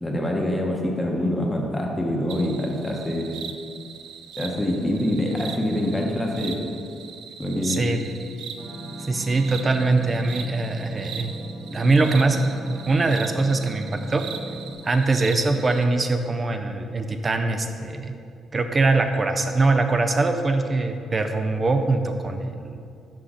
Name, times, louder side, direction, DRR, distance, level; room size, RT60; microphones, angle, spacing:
voice 1, 0.0-3.3 4.4-6.6 7.4-7.9, left 1 dB, 15° left, -1 dB, 1.0 m, -25 dB
sound 1, 2.3-15.9, right 7 dB, 85° right, 0.4 m, -40 dB
voice 2, 7.6-8.0 9.1-11.3 11.7-14.2 14.8-18.1 18.5-22.8, right 3 dB, 30° right, 6 dB, 0.6 m, -22 dB
sound 2, 8.6-14.7, right 2 dB, 55° right, 1.6 m, -38 dB
6.1 x 5.6 x 5.0 m, 2.4 s
cardioid pair, 90°, 0 cm